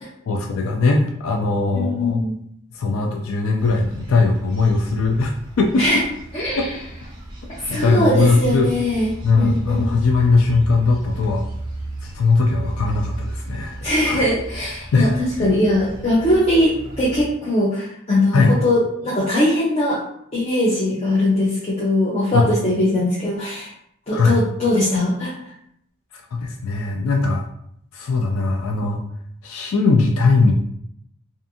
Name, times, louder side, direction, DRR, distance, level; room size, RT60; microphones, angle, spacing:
voice 1, 0.3-2.2 2.7-6.0 6.6-6.7 7.7-8.7 9.2-11.4 12.0-13.8 14.0-14.3 14.9-15.1 18.3-18.5 22.3-22.5 24.1-24.4 26.3-27.4 27.9-29.0 29.4-30.5, left 3 dB, 80° left, 2 dB, 0.3 m, -19 dB
voice 2, 1.7-2.4 5.8-6.0 6.3-6.7 7.5-10.0 13.8-20.0 20.3-23.7 24.1-25.3, left 1 dB, 30° left, -7 dB, 0.5 m, -21 dB
sound 1, 3.6-17.2, right 1 dB, 20° right, 0.5 m, -34 dB
2.5 x 2.5 x 2.6 m, 0.70 s
head